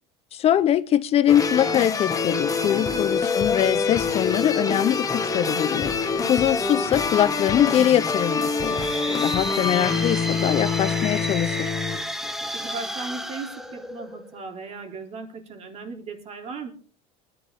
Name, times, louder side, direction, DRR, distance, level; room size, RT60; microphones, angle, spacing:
voice 1, 0.3-5.9 6.3-8.9 9.2-11.7, left 11 dB, 40° left, 15 dB, 0.8 m, -22 dB
sound 1, 1.3-12.0, left 5 dB, 25° left, 1.7 m, -25 dB
sound 2, 2.4-4.6 5.1-7.3 7.8-10.0 10.5-12.7, right 1 dB, 25° right, 4.1 m, -48 dB
sound 3, 8.5-14.4, equal, 5° right, 1.4 m, -32 dB
voice 2, 12.5-16.7, right 4 dB, 45° right, 4 dB, 3.7 m, -37 dB
23.5 x 11.0 x 3.6 m, 0.39 s
supercardioid pair, 115°, 15 cm